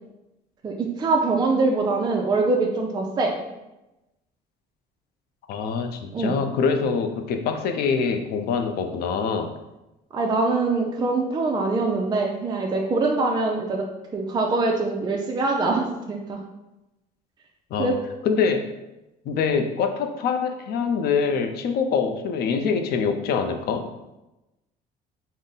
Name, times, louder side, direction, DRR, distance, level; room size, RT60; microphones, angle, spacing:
voice 1, 0.6-3.4 6.1-6.3 10.1-13.9 14.1-16.4 17.8-18.0, right 3 dB, 25° right, 1 dB, 0.4 m, -23 dB
voice 2, 5.5-9.5 17.7-17.9 18.2-18.6 19.3-23.9, left 5 dB, 65° left, 6 dB, 0.5 m, -24 dB
3.7 x 2.1 x 3.9 m, 0.97 s
cardioid pair, 110°, 17 cm